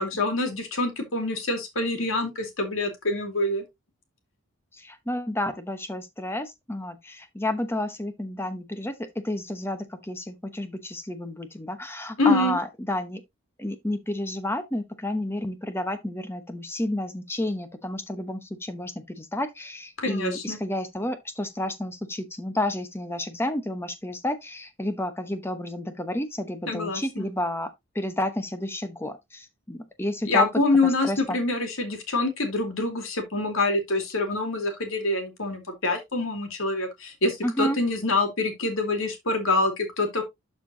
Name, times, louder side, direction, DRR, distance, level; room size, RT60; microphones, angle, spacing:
voice 1, 0.0-3.6 12.2-12.6 20.0-20.6 26.7-27.3 30.2-40.2, left 2 dB, 70° left, 2.5 m, -26 dB
voice 2, 4.7-13.2 13.6-27.7 27.9-30.5 31.0-31.4 37.4-37.8, left 1 dB, 10° left, 0.9 m, -31 dB
12.0 x 4.5 x 2.8 m
head